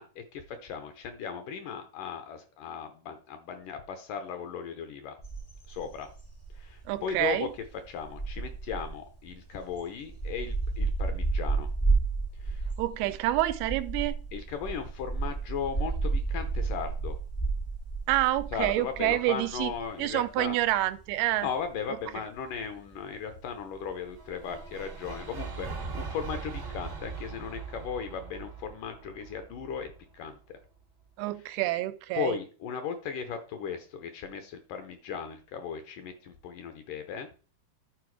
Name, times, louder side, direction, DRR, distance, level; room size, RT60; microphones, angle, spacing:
voice 1, 0.0-5.2 5.7-6.1 6.5-7.5 7.9-11.7 12.4-12.7 13.0-13.1 14.3-17.2 18.5-20.6 21.4-30.4 32.2-37.3, left 7 dB, 70° left, 2.2 m, -37 dB
sound 1, 5.2-25.0, right 3 dB, 25° left, 0.4 m, -33 dB
voice 2, 6.9-7.5 12.8-14.2 18.1-19.7 20.0-21.5 31.2-32.4, right 16 dB, 85° right, 2.5 m, -28 dB
sound 2, 24.1-30.3, right 4 dB, 65° right, 0.9 m, -40 dB
11.5 x 4.5 x 4.7 m
omnidirectional pair, 4.4 m